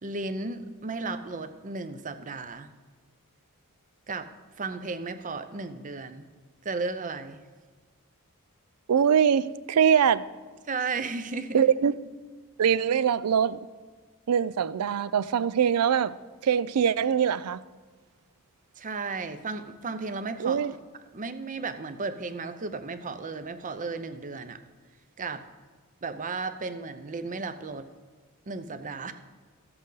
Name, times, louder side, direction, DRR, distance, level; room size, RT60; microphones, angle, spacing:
voice 1, 0.0-2.7 4.1-4.3 4.6-6.3 6.6-7.4 10.6-11.6 18.8-20.6 21.1-24.6 25.2-25.4 26.0-27.9 28.5-29.1, right 3 dB, 35° right, 0.6 m, -34 dB
voice 2, 8.9-10.3 11.5-11.9 12.6-13.6 14.3-16.2 16.4-17.6 20.4-20.7, right 8 dB, 85° right, 0.4 m, -23 dB
14.0 x 7.8 x 3.9 m
head